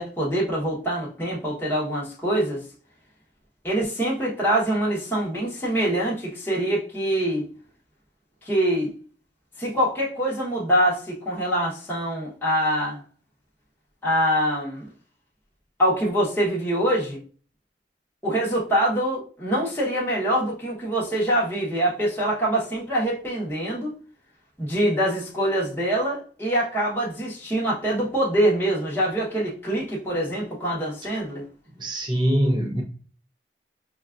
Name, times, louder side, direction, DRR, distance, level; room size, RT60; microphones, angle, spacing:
voice 1, 0.0-2.6 3.6-7.4 8.4-8.9 9.6-13.0 14.0-14.9 15.8-17.2 18.2-23.9 24.6-31.4, right 1 dB, 10° left, 0.9 m, -24 dB
voice 2, 31.7-32.8, right 1 dB, 25° right, 0.7 m, -23 dB
5.3 x 2.3 x 2.4 m
head